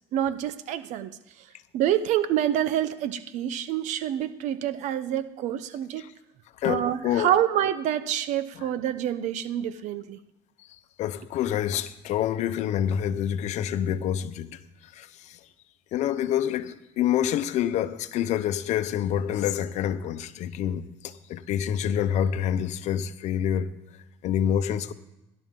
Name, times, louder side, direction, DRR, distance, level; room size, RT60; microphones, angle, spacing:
voice 1, 0.1-1.2 1.7-6.0 6.6-10.2, right 11 dB, 70° right, 0.8 m, -27 dB
voice 2, 6.6-7.3 8.5-8.7 10.6-15.5 15.9-24.9, left 10 dB, 65° left, 0.8 m, -27 dB
18.0 x 11.5 x 3.8 m
cardioid pair, 110°, 13 cm